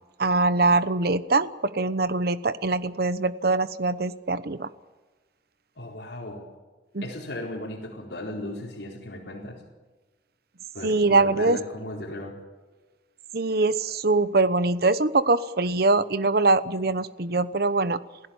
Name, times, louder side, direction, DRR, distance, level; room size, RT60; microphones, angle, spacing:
voice 1, 0.2-4.7 6.9-7.1 10.8-11.6 13.3-18.0, right 3 dB, 60° right, 14 dB, 1.0 m, -23 dB
voice 2, 5.8-6.5 7.0-9.6 10.7-12.4, left 1 dB, 70° left, -6 dB, 4.4 m, -36 dB
27.5 x 16.5 x 7.2 m, 1.3 s
head